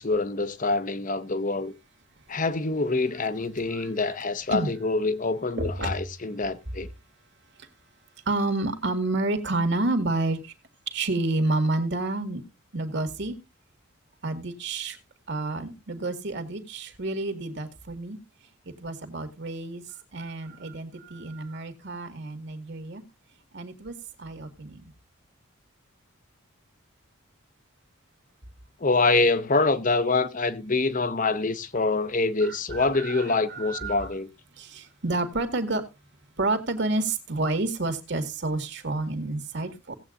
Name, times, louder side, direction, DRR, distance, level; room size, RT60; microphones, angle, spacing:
voice 1, 0.0-1.7 2.3-6.9 28.8-34.3, left 3 dB, 40° left, 0.8 m, -25 dB
voice 2, 5.6-5.9 8.3-10.5 10.9-12.4 12.7-13.4 14.2-15.0 15.3-18.2 18.8-19.8 20.1-23.0 23.5-24.8 32.4-33.9 34.6-35.8 36.4-40.0, right 2 dB, 55° right, 2.0 m, -29 dB
18.0 x 8.3 x 2.5 m
head